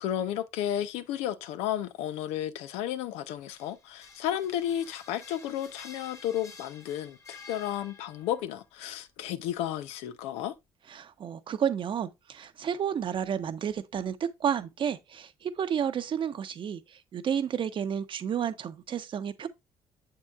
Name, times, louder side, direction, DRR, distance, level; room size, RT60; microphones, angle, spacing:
voice 1, 0.0-10.6, left 11 dB, 85° left, 0.6 m, -33 dB
sound 1, 3.3-8.4, left 4 dB, 30° left, 1.3 m, -50 dB
voice 2, 10.9-19.5, right 8 dB, 55° right, 0.9 m, -31 dB
7.1 x 6.7 x 2.4 m
supercardioid pair, 70°, 10 cm